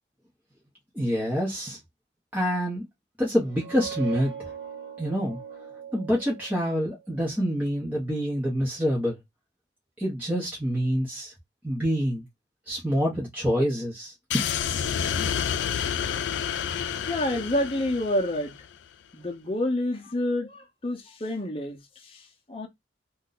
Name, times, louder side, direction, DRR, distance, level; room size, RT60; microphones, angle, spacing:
voice 1, 0.9-1.8 2.3-2.8 3.2-4.3 5.0-5.4 5.9-9.2 10.0-11.3 11.6-12.2 12.7-14.4, equal, 10° right, 0.8 m, -26 dB
sound 1, 3.4-7.0, right 8 dB, 65° right, 1.0 m, -40 dB
sound 2, 14.3-18.7, left 8 dB, 90° left, 0.3 m, -29 dB
voice 2, 17.1-18.5 19.1-22.7, left 1 dB, 30° left, 0.7 m, -28 dB
2.6 x 2.2 x 3.8 m
head